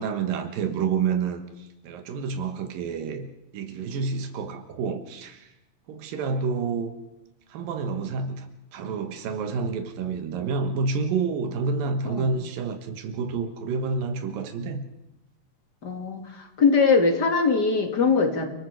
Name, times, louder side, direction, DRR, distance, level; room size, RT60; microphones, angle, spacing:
voice 1, 0.0-3.3 3.5-5.5 5.9-6.9 7.5-14.8 18.1-18.2, right 5 dB, 90° right, 7 dB, 3.1 m, -29 dB
voice 2, 15.8-18.5, left 4 dB, 35° left, 4 dB, 2.3 m, -22 dB
29.0 x 20.5 x 4.8 m, 0.93 s
omnidirectional pair, 4.0 m